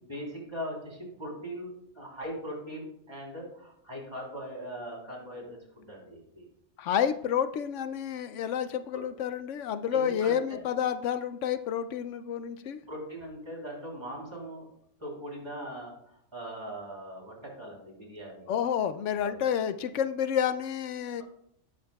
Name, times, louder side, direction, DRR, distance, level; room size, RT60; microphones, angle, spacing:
voice 1, 0.0-6.4 8.9-9.1 9.9-10.6 12.9-14.7 15.0-15.9 16.3-18.5 19.1-19.4, equal, 20° right, -2 dB, 3.5 m, -40 dB
voice 2, 6.8-12.8 18.5-21.2, left 8 dB, 85° left, 11 dB, 0.9 m, -29 dB
18.0 x 6.4 x 2.3 m, 0.70 s
omnidirectional pair, 1.2 m